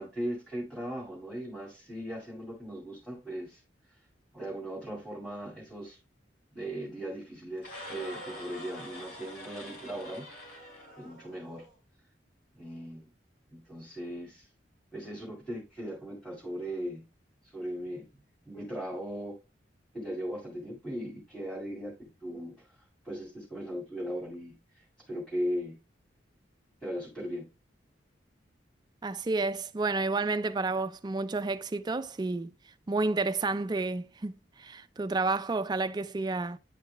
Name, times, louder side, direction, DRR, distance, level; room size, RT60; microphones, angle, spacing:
voice 1, 0.0-3.6 3.9-4.0 4.3-6.0 6.5-10.4 11.0-11.6 12.5-13.1 13.5-14.5 14.9-17.0 17.4-18.1 18.5-19.3 19.9-21.9 22.2-25.8 26.8-27.5, equal, 5° left, 2.2 m, -38 dB
sound 1, 7.6-11.7, left 1 dB, 55° left, 2.9 m, -45 dB
voice 2, 29.0-32.5 32.9-36.6, right 3 dB, 25° right, 0.3 m, -30 dB
9.9 x 4.9 x 2.2 m
head